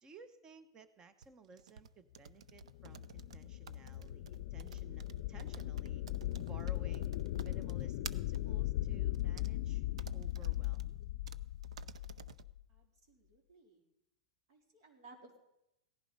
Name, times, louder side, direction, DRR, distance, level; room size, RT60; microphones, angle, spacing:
voice 1, 0.0-6.0 6.4-7.1 7.4-9.9 10.1-10.9, right 4 dB, 20° right, 12 dB, 1.0 m, -57 dB
sound 1, 1.2-8.4 9.1-9.5 10.0-10.9 11.3-11.4 11.6-12.4, right 7 dB, 90° right, 0.6 m, -51 dB
sound 2, 2.5-12.6, left 15 dB, 55° left, 0.4 m, -38 dB
voice 2, 12.7-13.8 14.5-15.4, right 3 dB, 60° right, 3 dB, 3.8 m, -60 dB
17.0 x 11.0 x 5.4 m, 0.88 s
hypercardioid pair, 140°, 3 cm